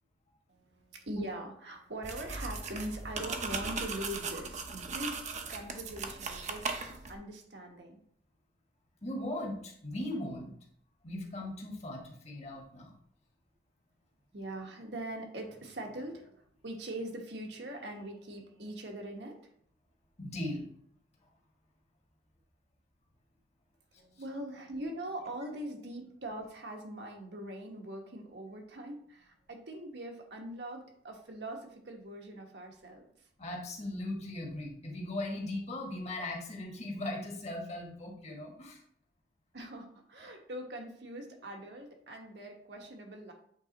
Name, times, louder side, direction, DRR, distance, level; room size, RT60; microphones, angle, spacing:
voice 1, 0.5-5.2 5.5-6.7 7.1-8.0 14.3-19.4 23.9-33.3 39.5-43.3, right 1 dB, 75° right, 2 dB, 1.3 m, -42 dB
sound 1, 2.0-7.1, right 4 dB, 40° right, 0.7 m, -38 dB
voice 2, 9.0-10.5 11.0-12.9 20.2-20.7 33.4-38.8, left 1 dB, 40° left, 1 dB, 1.4 m, -38 dB
8.1 x 3.4 x 4.0 m, 0.65 s
head